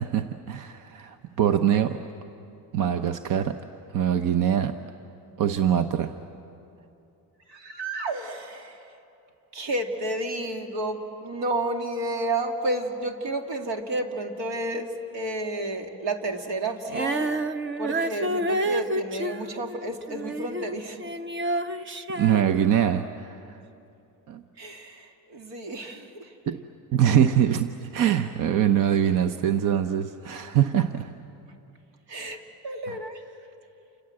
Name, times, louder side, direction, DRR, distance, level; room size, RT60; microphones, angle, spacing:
voice 1, 0.0-2.0 2.7-3.6 3.9-4.8 5.4-6.2 22.1-23.6 24.3-24.4 26.5-26.6 26.9-31.1 32.9-33.0, right 9 dB, 55° right, 9 dB, 0.8 m, -23 dB
voice 2, 7.5-8.8 9.5-17.3 17.8-21.1 24.6-26.3 32.1-33.2, right 1 dB, 80° right, 4 dB, 2.5 m, -31 dB
Female singing, 16.9-20.7 21.0-23.1, right 1 dB, 30° right, 0.9 m, -29 dB
29.0 x 26.0 x 7.7 m, 2.8 s
cardioid pair, 140°, 38 cm